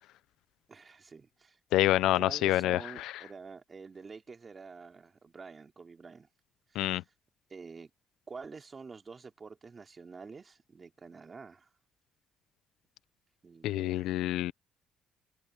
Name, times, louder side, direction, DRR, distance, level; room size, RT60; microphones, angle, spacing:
voice 1, 0.7-1.6 2.0-6.3 6.7-7.0 7.5-7.9 8.3-11.7 13.4-14.1, right 4 dB, 35° right, 3.1 m, -48 dB
voice 2, 1.7-3.1 6.7-7.0 13.6-14.5, left 15 dB, 85° left, 0.7 m, -27 dB
cardioid pair, 90°, 0 cm